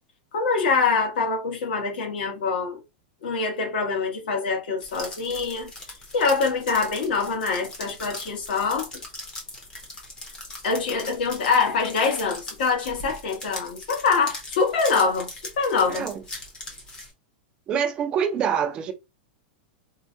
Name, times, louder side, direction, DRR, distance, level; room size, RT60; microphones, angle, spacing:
voice 1, 0.3-2.8 3.2-5.7 6.1-8.9 10.6-15.3 15.6-16.1, left 4 dB, 65° left, 1.3 m, -24 dB
sound 1, 4.8-17.1, left 2 dB, 15° left, 0.7 m, -40 dB
voice 2, 15.9-16.2 17.7-18.9, right 7 dB, 15° right, 0.4 m, -25 dB
4.4 x 2.1 x 2.7 m
supercardioid pair, 180°, 6 cm